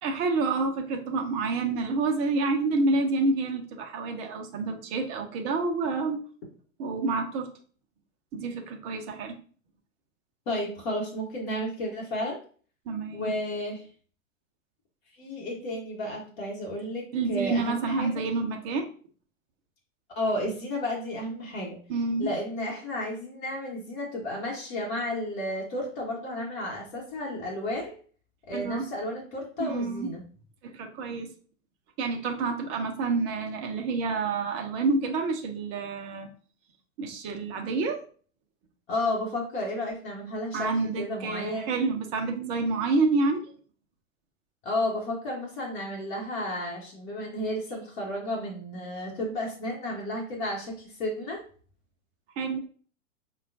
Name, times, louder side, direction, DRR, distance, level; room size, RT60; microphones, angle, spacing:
voice 1, 0.0-6.2 6.8-7.5 8.3-9.4 12.9-13.3 17.1-18.9 21.9-22.3 28.5-28.9 29.6-30.1 30.6-31.3 32.0-36.3 37.0-38.0 40.5-43.4 52.4-52.6, right 3 dB, 15° right, 3 dB, 0.4 m, -28 dB
voice 2, 10.5-12.4 13.1-13.8 15.2-18.1 20.1-21.8 22.2-27.9 28.5-30.2 38.9-41.7 44.6-51.4, left 1 dB, 50° left, -2 dB, 1.2 m, -32 dB
5.3 x 2.2 x 2.6 m, 0.42 s
figure-of-eight pair, 100°, 40 cm